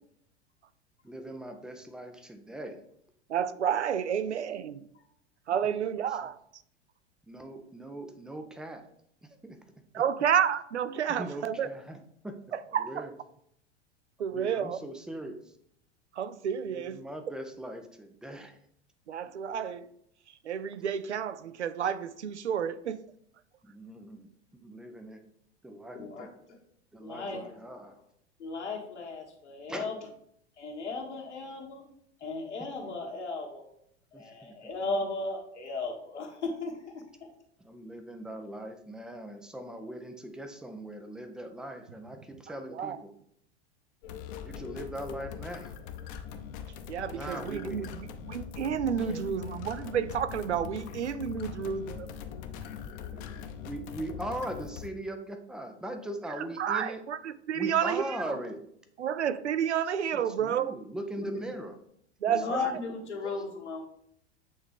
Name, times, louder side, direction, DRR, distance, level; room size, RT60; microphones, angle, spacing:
voice 1, 1.0-2.8 5.6-5.8 7.3-8.8 9.4-9.6 11.2-12.0 12.2-12.4 12.8-13.1 14.3-15.4 16.7-18.6 23.6-24.3 24.6-25.2 25.6-26.3 26.9-28.0 29.7-29.9 34.1-34.6 37.6-43.1 44.4-45.7 47.1-47.9 49.0-49.2 52.6-57.0 57.5-58.6 60.1-61.7 63.2-63.4, right 1 dB, ahead, 0.3 m, -40 dB
voice 2, 3.3-4.8 5.5-6.4 9.9-11.7 12.5-13.1 14.2-14.8 16.1-17.0 19.1-19.9 20.4-23.0 42.7-43.0 46.9-52.1 56.4-58.4 59.0-60.8 62.2-62.8, right 8 dB, 80° right, 0.5 m, -30 dB
voice 3, 25.9-26.6 27.0-28.0 28.4-30.1 30.6-31.8 32.2-33.7 34.1-37.3 61.2-61.5 62.2-63.8, left 3 dB, 80° left, 1.4 m, -36 dB
sound 1, 44.0-54.9, left 8 dB, 40° left, 0.7 m, -42 dB
7.9 x 3.4 x 3.5 m
figure-of-eight pair, 85°, 34 cm